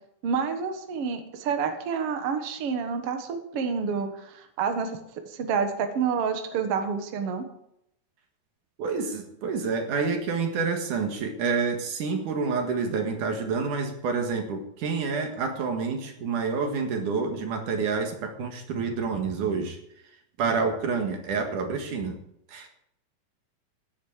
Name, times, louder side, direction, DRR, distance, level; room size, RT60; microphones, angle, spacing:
voice 1, 0.2-4.9 5.3-7.4, right 6 dB, 80° right, 6 dB, 1.3 m, -28 dB
voice 2, 8.8-19.8 20.4-22.2 22.5-22.7, right 5 dB, 55° right, 4 dB, 2.8 m, -28 dB
15.0 x 10.0 x 4.9 m, 0.76 s
omnidirectional pair, 4.8 m